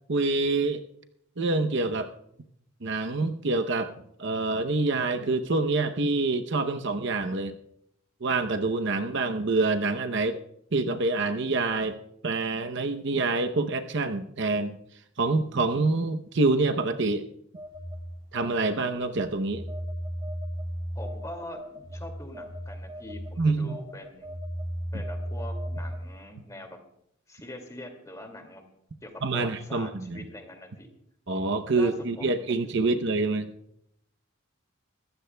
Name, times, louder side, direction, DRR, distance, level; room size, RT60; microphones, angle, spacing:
voice 1, 0.1-0.8 1.4-2.1 2.8-3.9 4.2-7.5 8.2-10.4 10.7-12.0 12.2-14.8 15.2-17.3 18.3-19.6 23.4-23.8 29.2-30.2 31.3-33.5, right 3 dB, 55° right, 7 dB, 0.8 m, -26 dB
Telephone, 17.5-26.2, equal, 20° right, 2.7 m, -36 dB
voice 2, 20.9-24.3 24.9-26.8 27.3-28.6 29.0-30.9 31.7-33.0, left 1 dB, 15° left, 4 dB, 2.2 m, -43 dB
24.5 x 15.0 x 2.3 m, 0.72 s
head